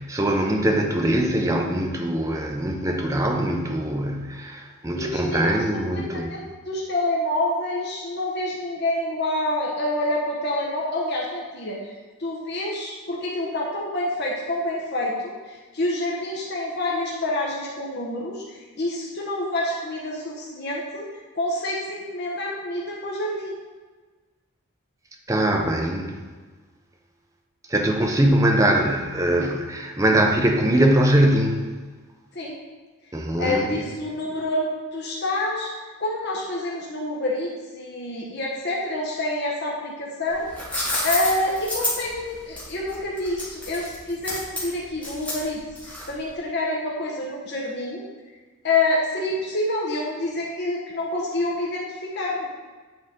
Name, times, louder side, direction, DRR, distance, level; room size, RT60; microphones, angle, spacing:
voice 1, 0.0-6.3 25.3-26.1 27.7-31.7 33.1-33.7, right 1 dB, 15° right, 1 dB, 0.6 m, -22 dB
voice 2, 4.9-11.9 12.2-21.1 21.3-23.6 32.3-32.6 33.4-35.7 36.0-40.5 41.0-48.0 48.6-52.5, left 1 dB, 50° left, -3 dB, 1.0 m, -27 dB
sound 1, 40.3-46.3, left 1 dB, 5° left, 1.3 m, -29 dB
8.9 x 4.0 x 3.7 m, 1.3 s
head